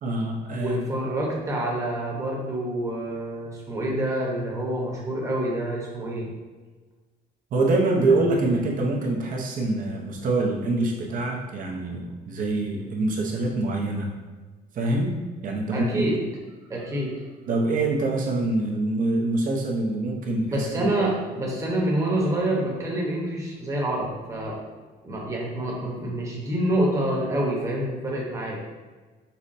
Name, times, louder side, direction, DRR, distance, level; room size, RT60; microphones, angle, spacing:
voice 1, 0.0-0.9 7.5-14.1 14.7-15.1 15.4-16.1 17.5-20.9, right 2 dB, 55° right, 0 dB, 0.8 m, -25 dB
voice 2, 0.6-6.3 15.7-16.2 16.7-17.1 20.4-24.6 25.0-28.6, right 1 dB, 20° right, -3 dB, 1.0 m, -27 dB
5.5 x 2.1 x 2.6 m, 1.3 s
cardioid pair, 110°, 17 cm